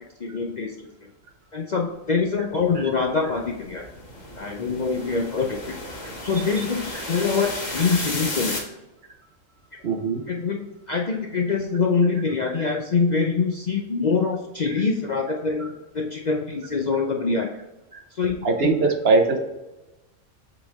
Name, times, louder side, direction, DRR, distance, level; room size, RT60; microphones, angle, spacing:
voice 1, 0.2-0.7 1.0-1.1 1.5-3.9 4.4-5.7 6.2-8.6 10.3-17.5 18.1-18.7, left 4 dB, 50° left, 1 dB, 0.5 m, -24 dB
sound 1, 2.6-8.6, left 2 dB, 35° left, 1.2 m, -34 dB
voice 2, 9.8-10.2 12.6-12.7 15.6-15.7 17.9-18.0 18.4-19.4, right 3 dB, 50° right, 3 dB, 1.0 m, -21 dB
7.4 x 4.0 x 3.5 m, 1.0 s
omnidirectional pair, 1.4 m